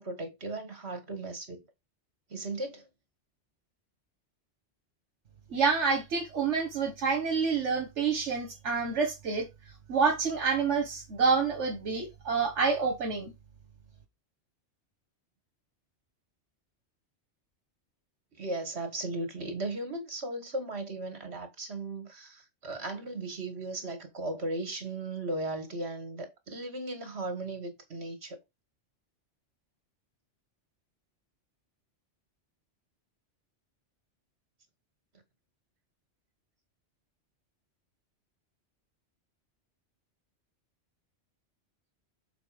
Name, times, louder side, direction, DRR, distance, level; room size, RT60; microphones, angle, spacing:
voice 1, 0.0-1.6 2.3-2.8 18.4-28.4, right 2 dB, 65° right, 2.2 m, -36 dB
voice 2, 5.5-9.5 9.9-13.3, right 5 dB, 80° right, 1.6 m, -28 dB
6.9 x 4.2 x 5.1 m
omnidirectional pair, 1.2 m